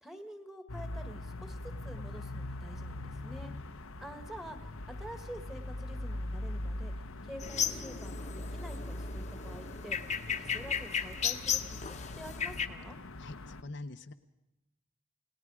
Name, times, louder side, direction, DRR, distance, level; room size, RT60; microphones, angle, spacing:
voice 1, 0.0-1.6 1.8-3.5 4.0-6.9 7.2-10.0 10.3-13.0, equal, ahead, 7 dB, 1.6 m, -48 dB
sound 1, 0.7-13.6, left 1 dB, 85° left, 1.1 m, -41 dB
sound 2, 7.4-12.7, left 7 dB, 35° left, 1.1 m, -35 dB
voice 2, 13.2-14.1, left 2 dB, 55° left, 8 dB, 0.8 m, -44 dB
29.0 x 18.5 x 4.9 m, 0.97 s
head